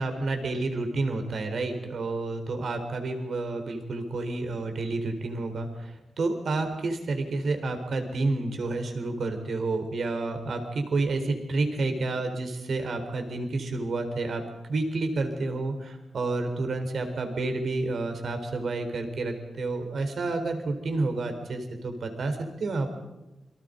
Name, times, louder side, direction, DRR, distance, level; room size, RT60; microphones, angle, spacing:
voice 1, 0.0-14.4 14.7-22.9, right 3 dB, 60° right, 6 dB, 4.2 m, -30 dB
28.5 x 24.0 x 5.3 m, 1.0 s
wide cardioid pair, 140°, 0 cm